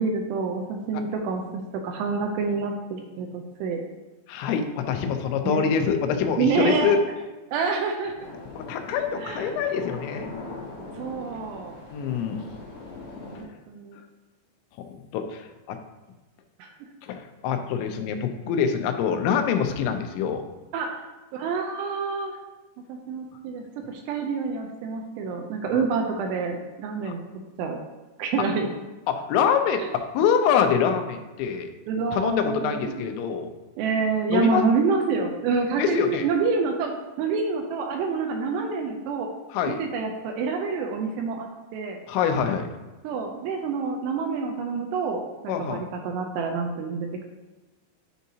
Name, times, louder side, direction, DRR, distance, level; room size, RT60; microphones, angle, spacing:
voice 1, 0.0-1.4 1.8-3.8 5.4-5.7 6.4-7.0 7.5-8.3 9.2-9.4 11.0-11.8 13.3-14.0 16.6-16.7 20.7-21.0 21.3-22.3 22.9-27.2 27.6-27.8 28.2-28.7 29.8-29.9 31.9-33.1 33.8-36.9 37.2-39.3 39.7-42.0 43.0-47.2, right 5 dB, 80° right, 3 dB, 2.5 m, -27 dB
voice 2, 4.3-7.0 8.5-10.3 11.9-12.4 14.8-15.8 17.0-20.4 25.7-25.9 27.0-27.1 29.1-31.7 32.1-33.5 34.3-34.6 35.8-36.3 39.5-39.8 42.1-42.7 45.5-45.8, left 7 dB, 85° left, 6 dB, 3.0 m, -25 dB
sound 1, 8.2-13.4, left 2 dB, 60° left, 2.2 m, -40 dB
10.0 x 4.5 x 2.7 m, 1.1 s
omnidirectional pair, 5.2 m